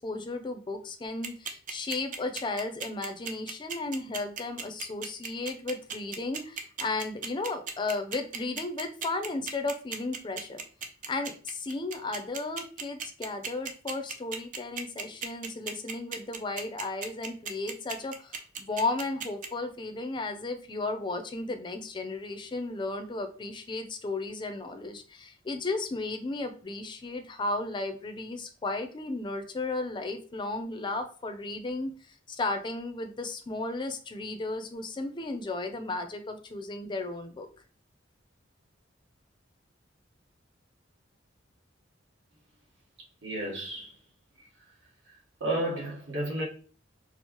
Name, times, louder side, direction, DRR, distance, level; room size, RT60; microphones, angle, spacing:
voice 1, 0.0-10.6 11.1-37.5, left 2 dB, 25° left, 0.4 m, -34 dB
sound 1, 1.2-19.5, right 6 dB, 45° right, 0.4 m, -36 dB
voice 2, 43.2-43.9 45.4-46.5, right 1 dB, 70° right, 1.2 m, -31 dB
4.4 x 2.0 x 2.9 m
head